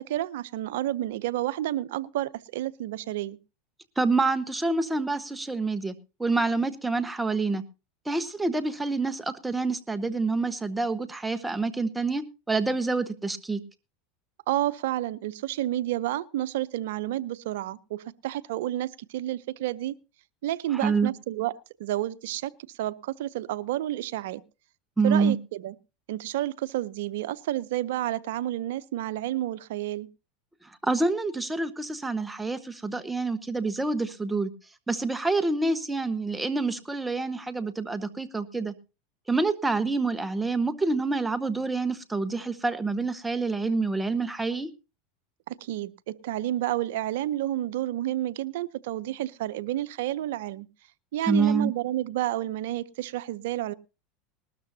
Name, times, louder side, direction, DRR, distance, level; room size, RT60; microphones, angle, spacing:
voice 1, 0.0-3.4 14.5-19.9 20.4-21.5 21.8-22.5 22.8-24.4 25.0-25.7 26.1-30.1 45.5-50.7 51.1-53.7, right 14 dB, 75° right, 0.7 m, -30 dB
voice 2, 4.0-5.9 6.2-7.6 8.0-13.6 20.8-21.1 25.0-25.4 30.8-34.5 34.9-38.7 39.3-44.7 51.3-51.7, right 3 dB, 10° right, 1.3 m, -27 dB
19.5 x 13.0 x 2.8 m
hypercardioid pair, 105°, 0 cm